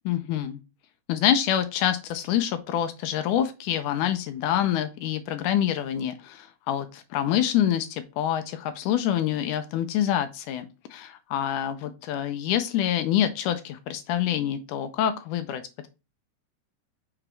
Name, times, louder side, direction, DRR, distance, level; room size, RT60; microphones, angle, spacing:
voice 1, 0.1-0.6 1.1-15.9, left 10 dB, 80° left, 9 dB, 2.0 m, -26 dB
6.1 x 3.9 x 4.5 m, 0.28 s
omnidirectional pair, 3.8 m